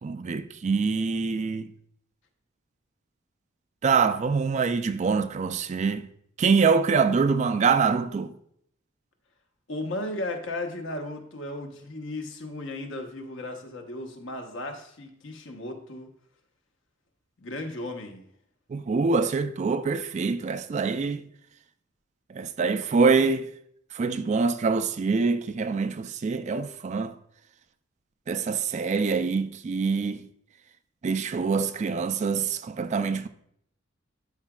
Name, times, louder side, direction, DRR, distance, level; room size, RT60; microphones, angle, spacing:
voice 1, 0.0-1.7 3.8-6.1 6.4-8.3 18.7-21.2 22.3-23.5 23.9-27.1 28.3-30.3 31.0-33.3, right 5 dB, 35° right, 0.3 m, -25 dB
voice 2, 9.7-16.1 17.4-18.3, left 1 dB, 70° left, 1.1 m, -35 dB
11.5 x 4.9 x 2.3 m
head